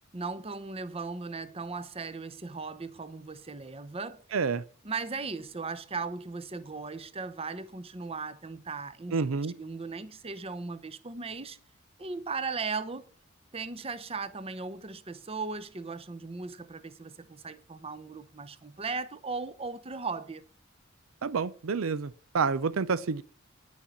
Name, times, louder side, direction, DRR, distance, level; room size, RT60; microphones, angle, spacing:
voice 1, 0.1-4.2 4.8-9.2 9.6-11.6 12.0-13.1 13.5-20.5, right 4 dB, 30° right, 0.8 m, -37 dB
voice 2, 4.3-4.6 9.1-9.5 21.2-23.2, right 5 dB, 90° right, 0.5 m, -29 dB
9.8 x 6.2 x 7.1 m
head